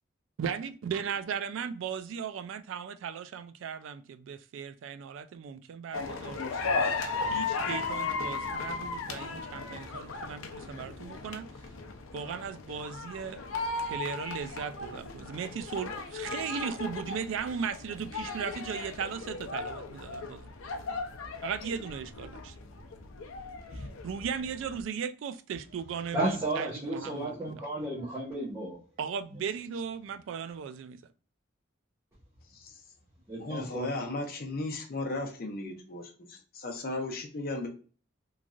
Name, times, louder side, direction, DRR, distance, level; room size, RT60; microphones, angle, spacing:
voice 1, 0.4-6.7 7.3-11.5 12.1-13.4 13.9-20.4 21.4-22.6 23.7-27.4 29.0-31.0, right 7 dB, 75° right, 0.3 m, -37 dB
sound 1, 5.9-24.8, left 4 dB, 90° left, 0.5 m, -36 dB
voice 2, 26.1-28.8 29.3-29.4 33.3-33.9, right 1 dB, 15° right, 0.8 m, -33 dB
voice 3, 33.4-37.7, left 2 dB, 45° left, 0.6 m, -36 dB
3.1 x 2.5 x 2.3 m
head